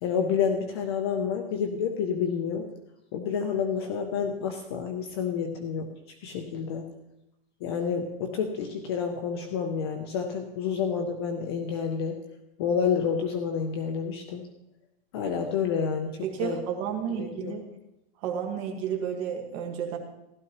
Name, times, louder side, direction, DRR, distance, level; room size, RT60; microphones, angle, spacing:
voice 1, 0.0-2.7 3.1-5.9 6.2-6.9 7.6-12.2 12.6-14.5 15.1-16.6 17.2-17.5, left 6 dB, 25° left, 5 dB, 0.5 m, -29 dB
voice 2, 16.2-17.6 18.2-20.0, right 8 dB, 30° right, 2 dB, 1.5 m, -32 dB
15.0 x 12.0 x 3.0 m, 0.89 s
supercardioid pair, 175°, 32 cm